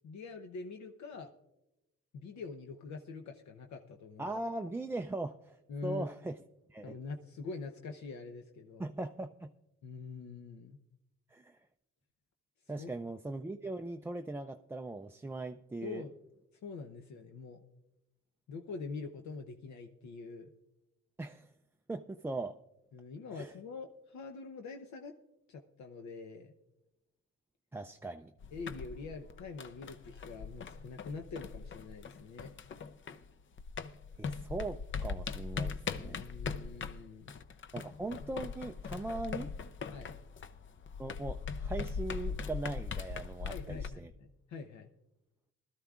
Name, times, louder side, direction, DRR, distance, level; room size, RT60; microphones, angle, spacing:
voice 1, 0.0-1.3 2.1-4.4 5.7-6.1 6.8-8.9 9.8-10.8 12.8-12.9 15.8-16.2 16.6-17.6 18.5-20.5 22.9-25.1 25.5-26.5 28.5-32.5 36.0-37.4 39.9-40.1 43.5-44.9, left 4 dB, 70° left, 4 dB, 0.8 m, -45 dB
voice 2, 4.2-5.6 5.8-6.4 6.7-6.9 8.8-9.5 11.3-11.6 12.7-16.0 21.2-21.5 21.9-22.6 23.3-23.5 27.7-28.3 34.2-36.2 37.7-39.5 41.0-44.1, right 2 dB, 10° right, 5 dB, 0.3 m, -40 dB
sound 1, 28.4-33.3 33.6-43.9, left 5 dB, 40° left, 0.6 m, -40 dB
20.0 x 12.5 x 2.4 m, 0.95 s
cardioid pair, 90°, 30 cm